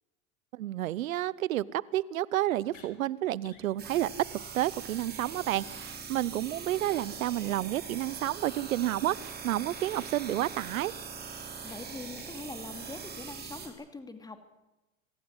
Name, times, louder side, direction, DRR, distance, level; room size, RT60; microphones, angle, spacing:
voice 1, 0.5-10.9, right 14 dB, 85° right, 21 dB, 1.0 m, -30 dB
sound 1, 2.7-2.9 3.4-3.7 4.0-4.1 4.4-4.5 4.8-4.9 9.1-9.2 9.7-10.0 10.4-10.5 10.9-11.8 12.1-12.4, left 8 dB, 85° left, 4.9 m, -57 dB
sound 2, 3.8-13.7, right 6 dB, 25° right, 5.9 m, -42 dB
voice 2, 11.4-14.4, left 3 dB, 10° left, 8 dB, 2.6 m, -43 dB
25.5 x 15.5 x 9.9 m, 1.0 s
supercardioid pair, 125°, 40 cm